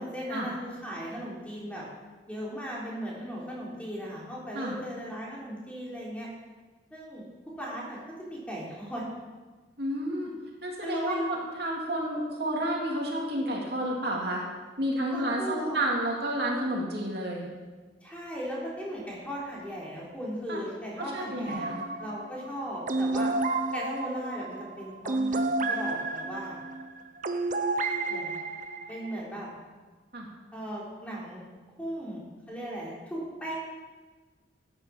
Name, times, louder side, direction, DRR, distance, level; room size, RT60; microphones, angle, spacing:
voice 1, 0.0-1.8 2.3-6.3 6.9-7.2 7.6-9.0 10.8-11.3 15.1-15.8 18.0-21.7 22.0-23.3 23.7-25.4 25.7-26.5 28.1-28.3 28.9-29.5 30.5-31.4 31.8-33.5, equal, 10° left, -5 dB, 3.5 m, -37 dB
voice 2, 9.8-10.3 10.6-14.4 14.8-17.4 20.5-20.6 21.1-21.8 30.1-30.3, right 1 dB, 60° right, -1 dB, 2.7 m, -30 dB
sound 1, 21.5-29.2, right 2 dB, 45° right, 0.8 m, -31 dB
13.5 x 9.8 x 5.9 m, 1.4 s
head